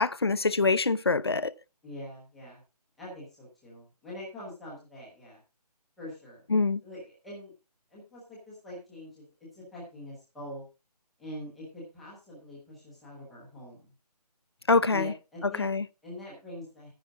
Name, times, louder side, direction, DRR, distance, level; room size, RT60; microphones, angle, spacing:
voice 1, 0.0-1.5 6.5-6.8 14.7-15.1 15.6-15.8, left 3 dB, 40° left, 0.5 m, -24 dB
voice 2, 1.8-2.6 3.0-5.4 6.0-6.4 6.8-7.5 7.9-9.2 9.5-10.7 11.2-13.8 14.9-15.7 16.0-16.9, left 1 dB, ahead, 0.7 m, -44 dB
11.0 x 10.0 x 3.7 m
figure-of-eight pair, 175°, 21 cm